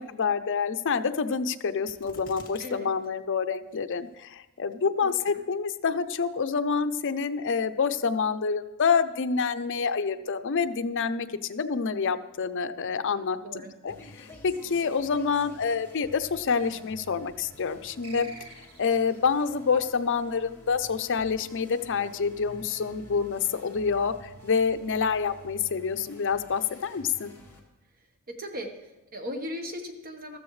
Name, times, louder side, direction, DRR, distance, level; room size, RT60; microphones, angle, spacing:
voice 1, 0.0-18.3 18.8-24.1 24.4-27.3, left 5 dB, 55° left, 10 dB, 0.6 m, -27 dB
sound 1, 1.9-2.7 3.0-3.1 3.7-4.2 4.7-4.8, left 3 dB, 40° left, 2.0 m, -49 dB
voice 2, 2.6-2.9 5.0-5.1 13.4-13.7 28.3-30.4, equal, 40° right, 4 dB, 1.2 m, -37 dB
sound 2, 13.9-27.6, left 1 dB, 10° left, 1.8 m, -50 dB
sound 3, 18.0-19.2, right 3 dB, 75° right, 1.5 m, -47 dB
14.0 x 13.5 x 3.2 m, 1.0 s
head